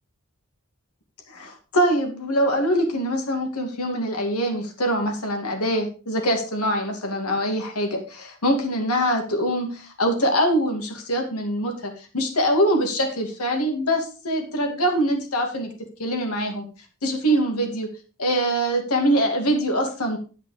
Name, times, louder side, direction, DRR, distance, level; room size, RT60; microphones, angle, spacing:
voice 1, 1.3-15.7 16.0-16.6 17.0-17.9 18.2-20.2, equal, 80° left, 3 dB, 2.3 m, -23 dB
11.0 x 5.8 x 4.9 m, 0.35 s
head